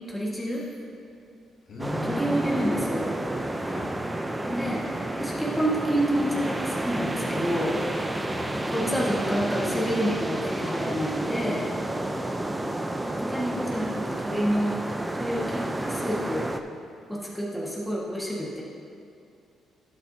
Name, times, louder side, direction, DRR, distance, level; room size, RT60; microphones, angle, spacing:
voice 1, 0.1-0.6 2.0-3.1 4.5-7.7 8.7-11.7 13.1-14.7 15.1-16.5 17.1-18.6, equal, 5° left, -5 dB, 1.6 m, -28 dB
voice 2, 1.7-2.4 3.6-3.9 8.2-8.5, left 3 dB, 60° left, -5 dB, 2.2 m, -38 dB
sound 1, 1.8-16.6, right 1 dB, 15° right, 0.5 m, -30 dB
12.0 x 8.5 x 2.7 m, 2.6 s
cardioid pair, 90°, 0 cm